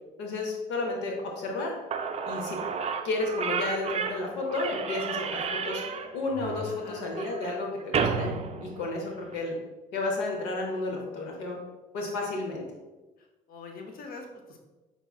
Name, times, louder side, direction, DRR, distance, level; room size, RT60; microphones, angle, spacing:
voice 1, 0.2-1.7 2.2-2.6 3.0-5.8 6.1-8.3 8.6-9.6 9.9-11.6 11.9-12.6, left 2 dB, 85° left, 0 dB, 0.7 m, -32 dB
Slam / Squeak, 1.6-1.7 1.9-9.4, right 5 dB, 35° right, 0.4 m, -32 dB
voice 2, 6.7-7.1 13.2-14.6, left 3 dB, 55° left, 3 dB, 0.7 m, -44 dB
5.5 x 2.9 x 2.3 m, 1.1 s
supercardioid pair, 70°, 18 cm